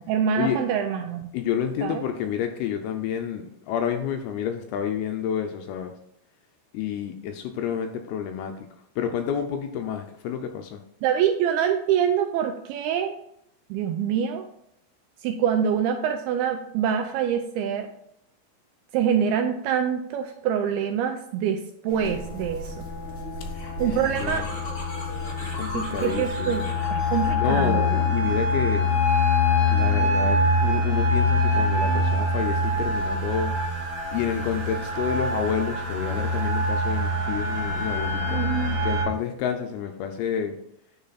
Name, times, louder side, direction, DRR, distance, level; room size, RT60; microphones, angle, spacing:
voice 1, 0.0-1.2 1.8-2.0 11.0-13.2 13.7-14.5 15.2-17.9 18.9-22.8 23.8-24.5 25.7-26.6 26.9-28.0 38.3-38.8, right 8 dB, 85° right, 6 dB, 2.3 m, -25 dB
voice 2, 1.3-5.9 6.7-8.5 9.0-10.8 23.4-23.5 23.9-24.5 25.4-26.6 27.1-28.9 29.7-33.6 34.1-38.4 38.8-40.6, left 8 dB, 80° left, 5 dB, 2.3 m, -29 dB
sound 1, 21.9-27.3, left 1 dB, 45° left, 0.9 m, -37 dB
sound 2, 21.9-39.0, left 2 dB, 45° right, 3.1 m, -25 dB
9.7 x 3.8 x 4.0 m, 0.74 s
omnidirectional pair, 4.8 m